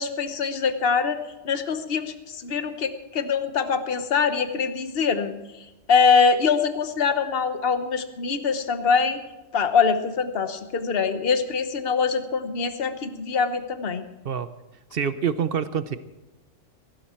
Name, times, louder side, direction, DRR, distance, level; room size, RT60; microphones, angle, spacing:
voice 1, 0.0-5.3 5.9-9.2 9.5-14.0, left 5 dB, 50° left, 9 dB, 1.2 m, -23 dB
voice 2, 14.9-16.0, right 7 dB, 55° right, 12 dB, 0.8 m, -26 dB
17.0 x 15.5 x 4.4 m, 1.0 s
omnidirectional pair, 1.3 m